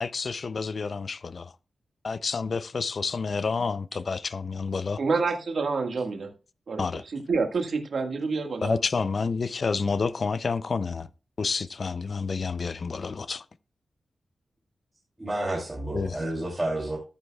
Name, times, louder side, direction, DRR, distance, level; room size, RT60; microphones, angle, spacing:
voice 1, 0.0-1.5 2.0-5.0 6.8-7.0 8.6-11.1 11.4-13.4 15.9-16.2, left 4 dB, 45° left, 0.4 m, -29 dB
voice 2, 5.0-6.3 6.7-6.8 7.1-8.8, right 4 dB, 60° right, 1.6 m, -27 dB
voice 3, 15.2-17.0, right 1 dB, 15° right, 2.8 m, -30 dB
14.0 x 7.9 x 2.3 m
wide cardioid pair, 170°, 0 cm